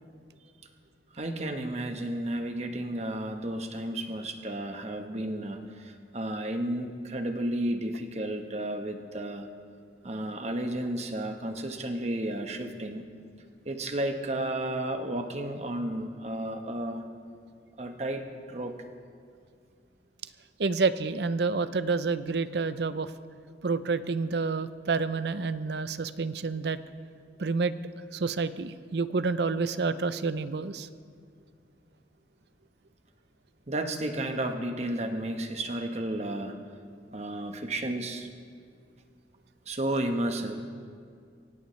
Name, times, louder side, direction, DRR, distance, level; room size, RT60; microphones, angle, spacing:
voice 1, 1.1-9.5 10.0-13.0 13.6-17.1 17.8-18.9 33.7-36.6 37.1-38.3 39.7-40.7, right 1 dB, 35° right, 5 dB, 1.1 m, -32 dB
voice 2, 20.6-23.1 23.6-26.8 27.4-27.7 28.1-30.9, right 4 dB, 65° right, 13 dB, 0.6 m, -28 dB
23.5 x 17.0 x 3.2 m, 2.2 s
head